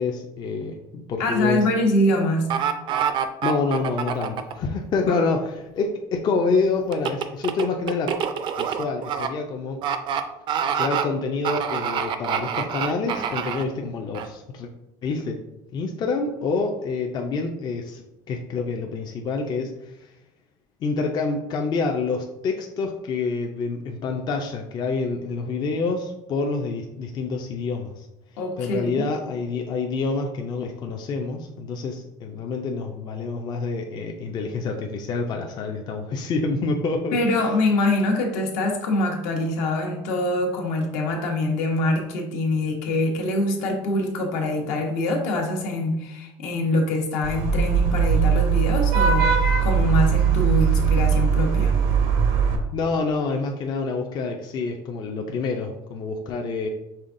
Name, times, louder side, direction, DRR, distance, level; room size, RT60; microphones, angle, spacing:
voice 1, 0.0-1.7 3.4-8.1 8.6-9.8 10.8-14.7 15.0-15.4 15.7-18.0 18.3-20.1 20.8-28.1 28.6-37.4 52.7-56.7, left 4 dB, 35° left, 2 dB, 0.4 m, -27 dB
voice 2, 1.2-2.5 5.1-5.2 28.4-29.0 37.1-51.7, left 2 dB, 75° left, 1 dB, 1.0 m, -24 dB
sound 1, 2.5-4.5 6.9-9.3 9.8-10.2 10.5-11.0 11.4-13.6 14.1-14.3, right 8 dB, 45° right, 0.4 m, -26 dB
Vehicle horn car horn honking / Traffic noise roadway noise, 47.2-52.6, right 6 dB, 85° right, 0.7 m, -20 dB
5.5 x 3.5 x 2.5 m, 0.88 s
cardioid pair, 135°, 12 cm